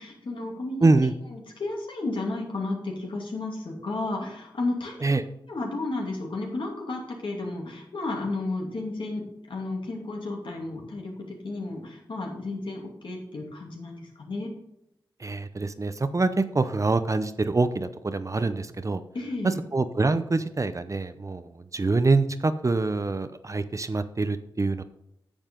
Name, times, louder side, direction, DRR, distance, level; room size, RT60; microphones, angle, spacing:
voice 1, 0.0-0.9 1.3-5.0 5.5-14.5 19.1-19.6, left 2 dB, 75° left, 0 dB, 2.7 m, -33 dB
voice 2, 0.8-1.1 5.0-5.2 15.2-19.0 19.7-24.8, right 3 dB, 35° right, 11 dB, 0.7 m, -25 dB
9.9 x 7.2 x 3.8 m, 0.83 s
cardioid pair, 60°, 9 cm